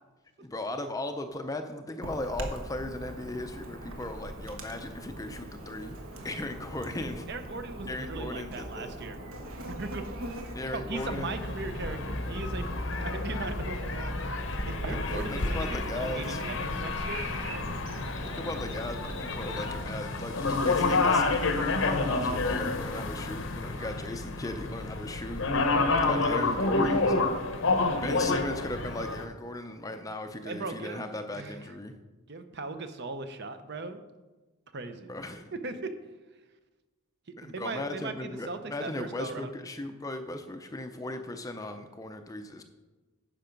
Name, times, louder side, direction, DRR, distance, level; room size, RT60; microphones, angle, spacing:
voice 1, 0.4-5.9 6.2-7.3 7.8-9.0 10.5-11.4 11.9-12.0 12.6-12.8 14.9-16.4 18.2-25.4 26.0-27.1 28.0-31.9 35.1-35.5 37.4-42.6, left 1 dB, 15° left, 7 dB, 0.5 m, -37 dB
Chirp tweet / Buzz, 2.0-19.8, equal, 70° right, 1.3 m, -39 dB
voice 2, 7.3-9.2 9.6-10.3 10.7-14.4 14.7-17.8 30.5-31.1 31.3-31.5 32.3-34.0 34.7-35.1 35.6-35.9 37.4-39.5, right 3 dB, 50° right, 9 dB, 0.7 m, -38 dB
sound 1, 10.9-29.2, left 3 dB, 60° left, 0.8 m, -29 dB
10.0 x 5.9 x 5.2 m, 1.2 s
head